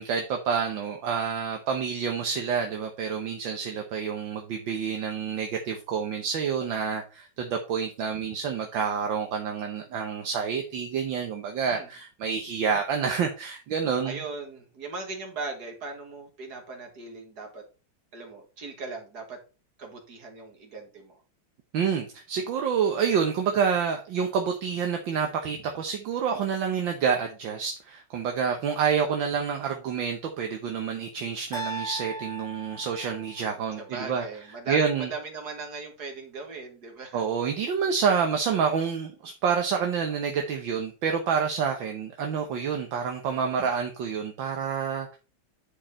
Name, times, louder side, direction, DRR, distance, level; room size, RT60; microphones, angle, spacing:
voice 1, 0.0-14.2 21.7-34.2 34.7-35.1 37.1-45.2, right 6 dB, 70° right, 3 dB, 1.8 m, -28 dB
voice 2, 14.0-17.6 18.1-19.4 19.8-21.2 33.8-37.2, right 3 dB, 50° right, 3 dB, 2.6 m, -38 dB
sound 1, 31.5-33.7, right 2 dB, 20° left, 0.7 m, -38 dB
10.0 x 4.7 x 4.2 m, 0.32 s
omnidirectional pair, 2.2 m